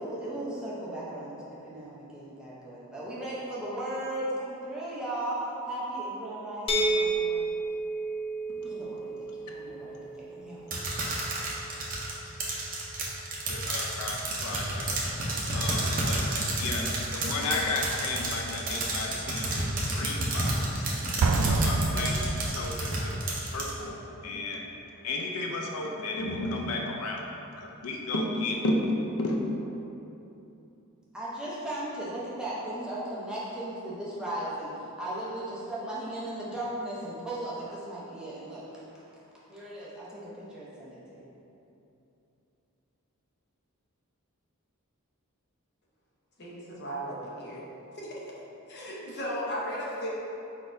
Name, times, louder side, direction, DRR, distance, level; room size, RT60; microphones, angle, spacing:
voice 1, 0.0-7.6 8.6-11.1 31.1-38.8 39.5-41.3, right 1 dB, 5° right, -8 dB, 0.7 m, -37 dB
sound 1, 6.7-12.5, right 2 dB, 25° left, 0.3 m, -32 dB
sound 2, 10.7-23.7, right 2 dB, 40° right, 0.7 m, -30 dB
voice 2, 13.5-14.9 15.5-16.2 16.6-20.9 21.5-23.0 23.5-24.7 25.0-27.2 27.6-28.9 29.2-29.4, left 2 dB, 85° left, 0 dB, 0.4 m, -33 dB
Explosion, 21.2-23.0, right 3 dB, 75° right, 0.3 m, -26 dB
voice 3, 46.4-47.7 47.9-48.1 48.7-50.1, equal, 50° left, -5 dB, 0.8 m, -35 dB
4.7 x 3.9 x 2.6 m, 2.9 s
head